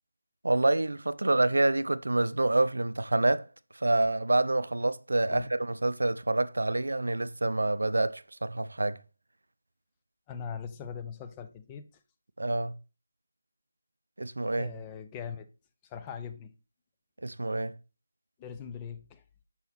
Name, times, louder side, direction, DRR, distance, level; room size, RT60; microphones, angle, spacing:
voice 1, 0.4-3.5 3.7-9.0 12.4-12.7 14.2-14.7 17.2-17.7, right 2 dB, 80° right, 0.4 m, -27 dB
voice 2, 10.3-11.9 14.6-15.5 15.8-16.5 18.4-19.2, left 7 dB, 15° left, 0.5 m, -40 dB
5.7 x 4.1 x 4.1 m
figure-of-eight pair, 160°, 0 cm